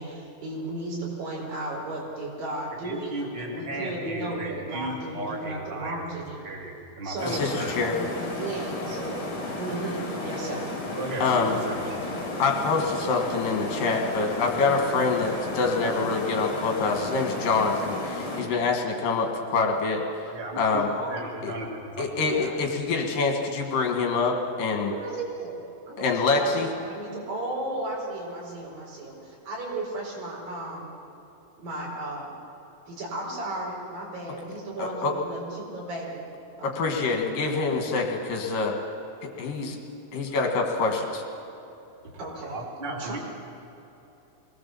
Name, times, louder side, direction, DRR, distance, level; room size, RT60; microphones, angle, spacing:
voice 1, 0.0-6.5 7.0-9.2 9.6-10.7 19.0-19.3 20.9-21.4 22.1-22.6 24.9-25.6 25.9-30.9 31.6-32.3 32.9-36.2 36.6-36.7 42.2-43.2, right 2 dB, 65° right, -3 dB, 6.3 m, -35 dB
voice 2, 2.8-6.1 6.4-7.7 11.0-12.1 20.3-20.8 21.1-22.1 42.5-43.2, right 2 dB, 15° right, -1 dB, 2.3 m, -35 dB
sound 1, 7.2-18.4, left 2 dB, 45° left, 4.1 m, -33 dB
voice 3, 7.3-8.0 11.2-11.6 12.4-20.3 20.6-20.9 21.4-21.5 22.0-24.9 26.0-26.7 34.8-35.1 36.6-38.8 39.2-39.8 40.1-41.2, left 4 dB, 65° left, 2 dB, 3.4 m, -26 dB
22.5 x 18.5 x 7.2 m, 3.0 s
omnidirectional pair, 4.3 m